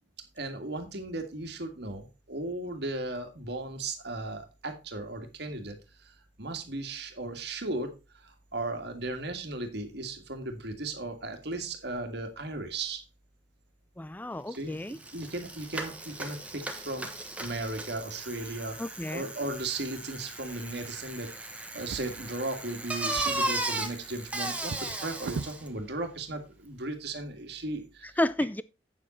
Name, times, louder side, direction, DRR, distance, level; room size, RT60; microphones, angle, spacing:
voice 1, 0.4-5.8 6.4-7.9 8.2-13.0 14.5-17.1 17.4-18.8 19.1-28.2, right 2 dB, 60° right, 1.9 m, -36 dB
voice 2, 14.0-15.0 18.8-19.3 28.2-28.6, left 1 dB, 10° left, 0.4 m, -31 dB
Bicycle, 14.5-14.6 14.9-25.7, right 2 dB, 5° right, 1.2 m, -36 dB
Drawer open or close, 21.7-22.7 23.0-25.6 26.5-26.7 27.0-27.1, right 4 dB, 90° right, 0.5 m, -41 dB
8.6 x 7.4 x 4.3 m
head